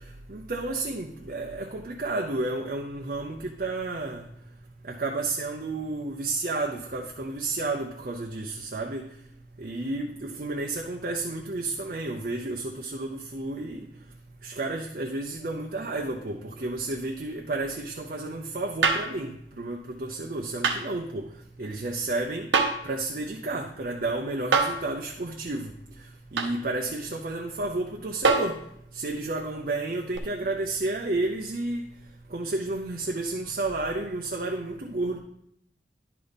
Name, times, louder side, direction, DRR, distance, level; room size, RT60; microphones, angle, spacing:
voice 1, 0.3-4.3 4.9-9.1 9.6-13.8 14.4-21.3 21.6-22.5 22.8-25.7 26.3-28.6 28.9-31.8 32.3-35.2, right 2 dB, 50° right, 1 dB, 0.6 m, -31 dB
sound 1, 18.8-19.2 20.6-20.8 22.5-22.9 24.5-24.9 26.4-26.6 28.2-28.6 30.1-30.2, right 4 dB, 80° right, 0.9 m, -23 dB
11.0 x 5.1 x 4.1 m, 0.73 s
head